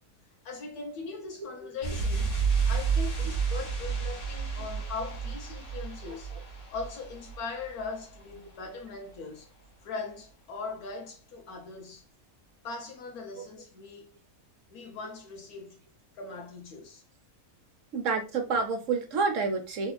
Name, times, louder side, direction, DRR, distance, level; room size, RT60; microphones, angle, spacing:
voice 1, 0.4-2.3 2.7-6.4 6.7-9.5 9.8-12.0 12.6-14.1 14.7-15.8 16.1-17.0, left 4 dB, 85° left, 1.4 m, -40 dB
sound 1, 1.8-8.3 8.6-8.7, right 5 dB, 40° left, 1.3 m, -31 dB
voice 2, 17.9-19.9, right 4 dB, 65° right, 1.0 m, -28 dB
3.5 x 3.4 x 2.2 m
omnidirectional pair, 1.5 m